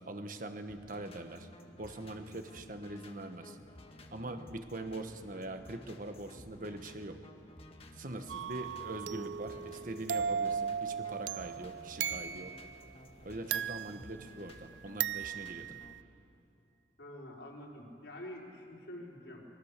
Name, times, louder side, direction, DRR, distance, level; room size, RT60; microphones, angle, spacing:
voice 1, 0.0-1.5 1.8-3.6 4.1-7.2 7.9-12.5 13.2-15.8, right 2 dB, 45° right, 7 dB, 1.4 m, -43 dB
sound 1, 0.7-15.9, left 1 dB, 35° left, 1.5 m, -54 dB
sound 2, 8.3-12.7 13.5-14.6 15.0-16.0, right 7 dB, 75° right, 0.5 m, -37 dB
voice 2, 17.0-19.4, left 1 dB, 70° left, -3 dB, 4.5 m, -47 dB
25.0 x 21.0 x 6.7 m, 2.6 s
head